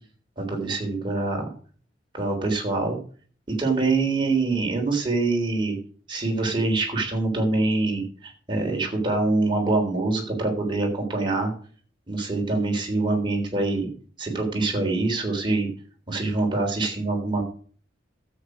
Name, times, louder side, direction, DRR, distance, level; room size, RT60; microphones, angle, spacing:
voice 1, 0.4-1.5 2.1-3.0 3.5-5.8 6.1-11.5 12.1-13.9 14.2-15.7 16.1-17.4, right 3 dB, 25° right, 0 dB, 3.5 m, -25 dB
13.0 x 8.0 x 5.0 m, 0.44 s
head